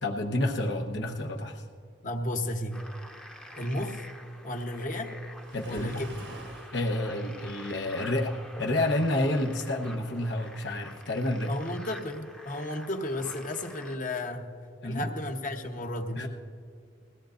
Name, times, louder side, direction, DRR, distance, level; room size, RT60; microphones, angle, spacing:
voice 1, 0.0-1.6 5.5-6.0 6.7-11.5 14.8-15.1 16.1-16.3, left 1 dB, 80° left, 2 dB, 1.0 m, -29 dB
voice 2, 2.0-2.9 3.6-4.0 4.4-5.1 5.6-6.1 11.5-14.5 14.8-16.3, left 1 dB, 45° left, 4 dB, 1.0 m, -33 dB
sound 1, 2.7-14.0, equal, 5° left, 0.7 m, -47 dB
Waves surf, 5.4-6.9, right 2 dB, 85° right, 1.5 m, -46 dB
21.0 x 16.5 x 2.6 m, 2.3 s
head